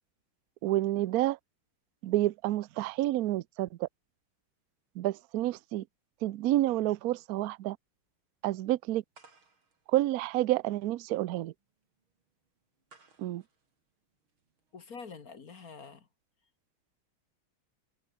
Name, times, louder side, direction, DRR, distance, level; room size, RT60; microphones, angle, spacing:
voice 1, 0.6-1.4 2.0-3.9 5.0-5.8 6.2-7.8 8.4-9.0 9.9-11.5 13.2-13.4, right 15 dB, 70° right, 0.9 m, -29 dB
sound 1, 9.1-14.8, right 4 dB, 85° right, 4.9 m, -63 dB
voice 2, 14.7-16.1, left 5 dB, 45° left, 2.0 m, -46 dB
open air
omnidirectional pair, 2.2 m